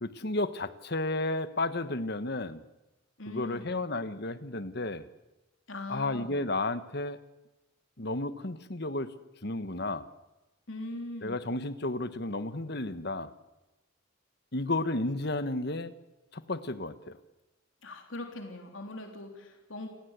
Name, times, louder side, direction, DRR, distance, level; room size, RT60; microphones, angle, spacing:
voice 1, 0.0-2.6 3.3-5.1 5.9-7.2 8.0-9.1 9.4-10.1 11.2-13.3 14.5-15.9 16.3-17.2, left 2 dB, 55° left, 12 dB, 1.4 m, -32 dB
voice 2, 3.2-3.8 5.7-6.3 10.7-11.4 17.8-19.9, left 2 dB, 70° left, 3 dB, 3.5 m, -41 dB
28.5 x 18.5 x 8.3 m, 1.0 s
head